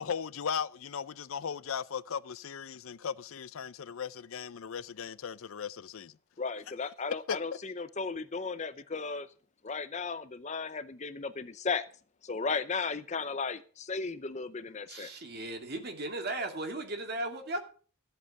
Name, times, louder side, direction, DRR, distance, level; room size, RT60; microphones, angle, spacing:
voice 1, 0.0-6.1 7.3-7.4, left 7 dB, 80° left, 0.5 m, -37 dB
voice 2, 6.4-9.3 9.6-11.8 12.2-15.1, left 4 dB, 35° left, 0.7 m, -35 dB
voice 3, 14.9-17.6, right 2 dB, 50° right, 2.4 m, -36 dB
13.5 x 8.0 x 6.6 m
head